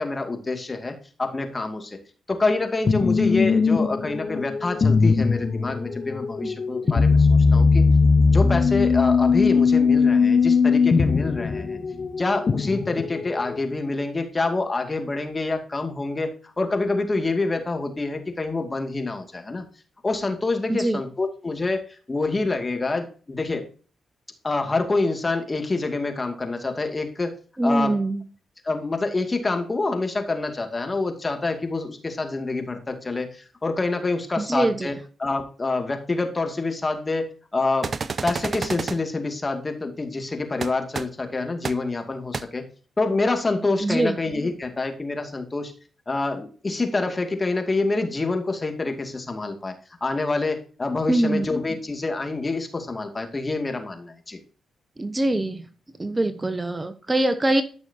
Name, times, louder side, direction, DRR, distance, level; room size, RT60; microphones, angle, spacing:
voice 1, 0.0-2.0 2.3-7.8 8.3-11.8 12.2-19.7 20.0-23.7 24.4-27.3 27.6-28.0 28.6-37.9 38.2-42.7 43.0-45.7 46.1-49.7 50.0-54.4, left 3 dB, 30° left, 5 dB, 2.4 m, -27 dB
sound 1, 2.9-13.7, left 4 dB, 50° left, 0.7 m, -20 dB
voice 2, 20.7-21.0 27.6-28.2 34.4-34.9 43.8-44.1 51.1-51.4 55.0-55.6 56.0-57.6, right 1 dB, 25° right, 10 dB, 1.1 m, -23 dB
sound 2, 37.8-39.0 40.6-40.7 40.9-41.0 41.6-41.7 42.3-42.4, right 5 dB, 50° right, 0.6 m, -29 dB
13.5 x 6.2 x 2.9 m, 0.38 s
hypercardioid pair, 40°, 0 cm